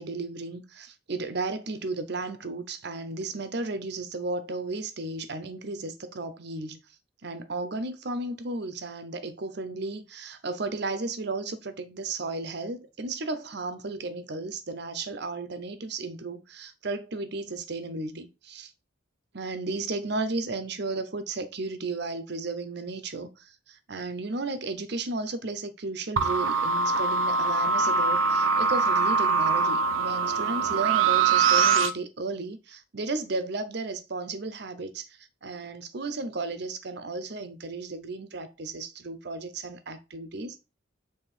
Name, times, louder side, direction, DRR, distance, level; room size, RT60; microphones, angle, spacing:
voice 1, 0.0-6.8 7.2-18.7 19.3-35.1 35.4-40.6, right 3 dB, 60° right, 0.8 m, -34 dB
sound 1, 26.2-31.9, right 4 dB, 90° right, 0.7 m, -23 dB
6.9 x 3.5 x 4.3 m
head